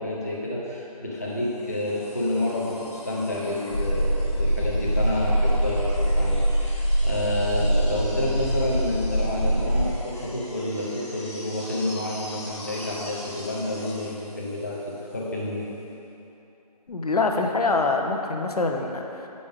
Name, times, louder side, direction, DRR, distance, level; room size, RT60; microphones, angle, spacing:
voice 1, 0.0-15.7, left 1 dB, 25° left, -5 dB, 0.5 m, -29 dB
sound 1, 1.4-15.4 16.9-17.0, left 1 dB, 40° left, 1.2 m, -44 dB
sound 2, 3.7-10.2, right 1 dB, 90° left, 1.1 m, -24 dB
voice 2, 16.9-19.3, left 3 dB, 70° left, 3 dB, 0.8 m, -25 dB
8.6 x 5.2 x 3.5 m, 2.9 s
figure-of-eight pair, 175°, 21 cm